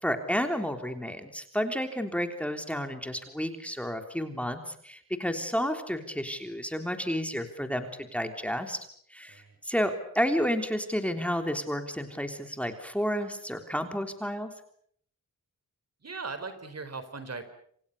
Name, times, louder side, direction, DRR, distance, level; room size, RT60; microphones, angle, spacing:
voice 1, 0.0-8.8 9.1-14.5, equal, 5° left, 6 dB, 3.5 m, -31 dB
voice 2, 16.0-17.4, right 4 dB, 50° right, 11 dB, 4.5 m, -39 dB
29.0 x 27.0 x 6.9 m, 0.65 s
wide cardioid pair, 105°, 33 cm